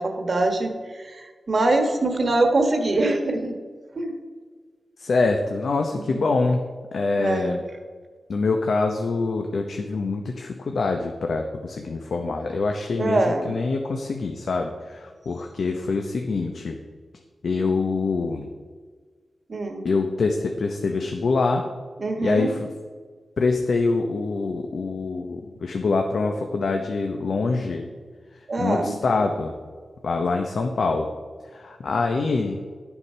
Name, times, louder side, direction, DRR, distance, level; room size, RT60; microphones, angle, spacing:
voice 1, 0.0-3.6 3.9-4.1 5.9-6.2 7.2-7.6 13.0-13.5 19.5-19.8 22.0-22.5 28.5-28.9, right 2 dB, 45° right, 5 dB, 1.3 m, -23 dB
voice 2, 5.0-6.6 6.9-7.6 8.3-16.8 17.4-18.5 19.8-21.6 22.2-22.7 23.4-27.9 28.6-29.5 30.0-31.1 31.5-32.6, left 3 dB, 65° left, 3 dB, 0.8 m, -25 dB
12.0 x 7.1 x 5.5 m, 1.6 s
wide cardioid pair, 135°, 0 cm